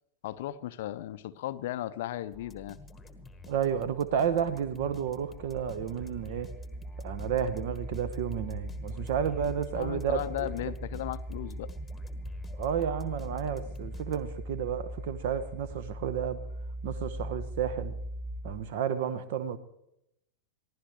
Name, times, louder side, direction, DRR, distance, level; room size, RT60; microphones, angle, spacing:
voice 1, 0.2-2.8 9.7-11.7, left 13 dB, 55° left, 0.5 m, -36 dB
sound 1, 2.3-14.5, left 2 dB, 10° left, 1.4 m, -50 dB
voice 2, 3.5-6.5 7.0-10.7 12.6-16.5 16.8-18.0 18.4-19.6, right 8 dB, 50° right, 1.1 m, -31 dB
sound 2, 3.9-18.7, equal, 10° right, 2.7 m, -40 dB
22.5 x 16.0 x 3.2 m
figure-of-eight pair, 90°, 0 cm